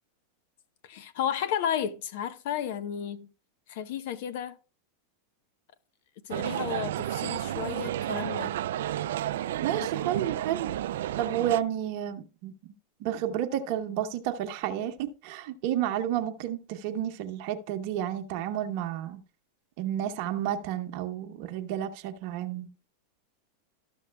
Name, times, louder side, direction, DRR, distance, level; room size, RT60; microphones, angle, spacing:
voice 1, 0.8-3.3 3.7-4.6 6.3-8.5, left 9 dB, 65° left, 0.9 m, -33 dB
sound 1, 6.3-11.6, right 12 dB, 75° right, 0.3 m, -31 dB
voice 2, 9.6-10.7 11.2-12.5 13.0-19.2 19.8-22.7, right 11 dB, 60° right, 0.9 m, -31 dB
13.0 x 6.2 x 2.2 m
hypercardioid pair, 120°, 0 cm